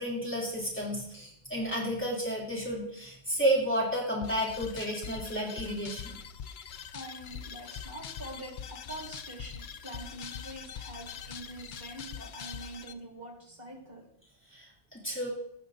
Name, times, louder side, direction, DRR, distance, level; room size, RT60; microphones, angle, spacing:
voice 1, 0.0-6.2 14.5-15.3, equal, 10° left, -5 dB, 2.8 m, -32 dB
sound 1, 4.2-12.9, left 7 dB, 60° left, 0.6 m, -43 dB
voice 2, 6.9-14.1, right 1 dB, 65° right, 0 dB, 2.5 m, -45 dB
15.0 x 6.5 x 2.6 m, 0.70 s
omnidirectional pair, 1.1 m